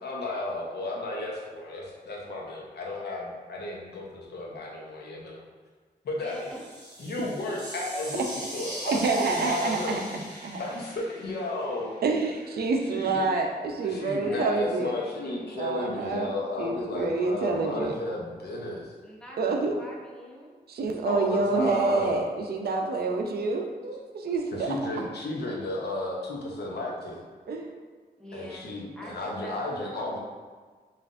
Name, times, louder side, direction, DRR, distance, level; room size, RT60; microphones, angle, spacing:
voice 1, 0.0-5.4 6.0-6.5 7.0-10.0 10.6-12.0 12.9-13.3 13.8-18.9 21.0-22.2 24.5-27.2 28.3-30.2, left 2 dB, 85° left, -3 dB, 0.8 m, -33 dB
voice 2, 6.2-6.6 12.1-12.3 14.3-14.5 14.8-15.6 19.0-20.6 28.2-28.7 28.9-30.2, equal, 5° left, -4 dB, 0.6 m, -44 dB
sound 1, 6.2-12.1, right 1 dB, 20° right, 1.2 m, -40 dB
voice 3, 8.9-10.6 12.0-14.9 15.6-16.3 16.6-17.9 19.4-19.7 20.7-24.7 27.5-27.7, right 3 dB, 70° right, 2 dB, 0.5 m, -27 dB
5.6 x 2.5 x 2.5 m, 1.5 s
wide cardioid pair, 175°, 17 cm